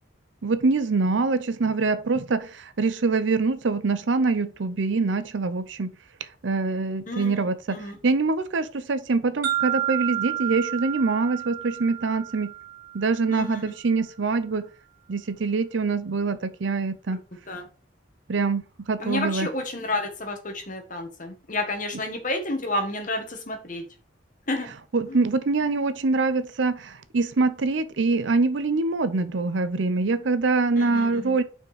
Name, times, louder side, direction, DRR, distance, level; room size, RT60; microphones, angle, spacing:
voice 1, 0.4-5.9 6.4-7.8 8.0-12.5 12.9-14.6 15.1-17.2 18.3-19.5 24.9-31.4, right 3 dB, 65° right, 0.6 m, -24 dB
voice 2, 7.1-7.9 13.3-13.6 17.5-17.6 19.0-23.8 24.5-24.7 30.8-31.3, left 2 dB, 40° left, 1.4 m, -30 dB
sound 1, 9.4-13.4, right 13 dB, 85° right, 1.6 m, -30 dB
5.6 x 4.5 x 4.9 m
head